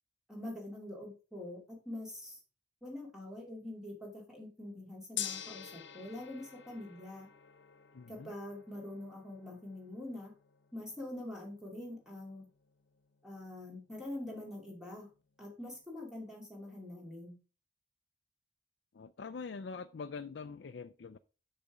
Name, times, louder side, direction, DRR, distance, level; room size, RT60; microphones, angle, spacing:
voice 1, 0.3-2.4 2.8-7.3 8.1-10.3 10.7-12.5 13.2-15.1 15.4-17.4, left 1 dB, 5° right, -2 dB, 2.7 m, -45 dB
Gong, 5.2-15.4, left 10 dB, 80° left, 1.0 m, -49 dB
voice 2, 7.9-8.3 18.9-21.2, left 5 dB, 65° left, 9 dB, 0.4 m, -44 dB
6.8 x 6.5 x 4.9 m, 0.35 s
head